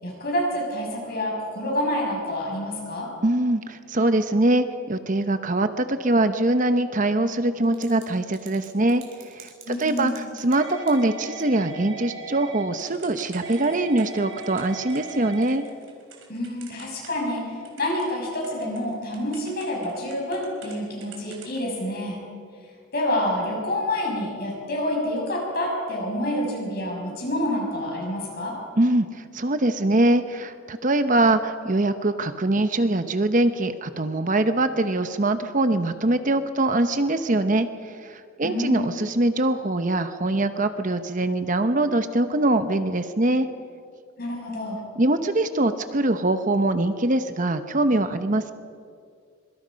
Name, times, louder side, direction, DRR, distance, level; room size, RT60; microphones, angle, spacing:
voice 1, 0.0-3.1 9.6-10.4 16.3-22.2 22.9-28.6 38.4-39.0 44.2-44.8, left 1 dB, 50° left, -1 dB, 6.6 m, -28 dB
voice 2, 3.2-9.0 9.3-15.6 28.8-37.7 38.0-43.5 45.0-48.6, right 2 dB, 40° right, 9 dB, 0.9 m, -23 dB
Typing / Telephone, 7.6-8.0 8.3-17.4 17.6-20.8 21.0-21.6, right 4 dB, 65° right, 4.2 m, -40 dB
25.5 x 23.5 x 5.3 m, 2.2 s
head